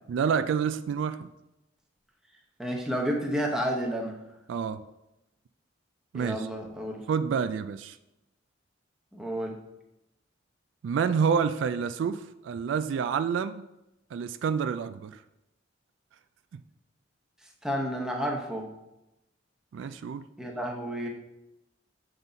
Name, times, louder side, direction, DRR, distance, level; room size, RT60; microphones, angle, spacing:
voice 1, 0.1-1.3 4.5-4.8 6.1-6.5 7.1-8.0 10.8-13.7 14.1-15.2 16.5-16.6 19.7-20.2, right 6 dB, 75° right, 12 dB, 0.3 m, -28 dB
voice 2, 2.6-4.2 6.1-7.0 9.1-9.6 17.6-18.7 20.4-21.1, equal, 5° right, 0 dB, 0.8 m, -31 dB
7.2 x 4.0 x 3.9 m, 0.92 s
head